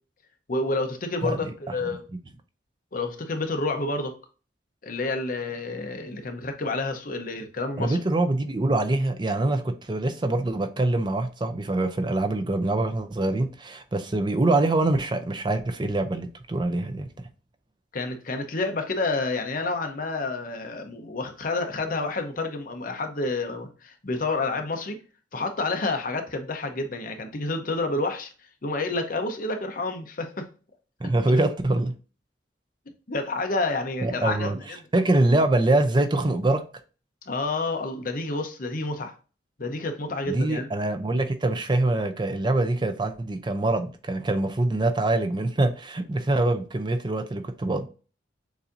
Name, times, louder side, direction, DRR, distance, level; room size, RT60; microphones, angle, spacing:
voice 1, 0.5-2.0 2.9-4.1 4.8-8.0 17.9-25.0 25.3-28.3 28.6-30.5 33.1-34.5 37.3-39.1 39.6-40.7, left 3 dB, 45° left, 0.8 m, -29 dB
voice 2, 1.2-1.5 7.8-17.1 31.0-31.9 34.0-34.6 34.9-36.6 40.3-47.9, right 2 dB, 25° right, 0.5 m, -24 dB
6.9 x 2.7 x 2.6 m
head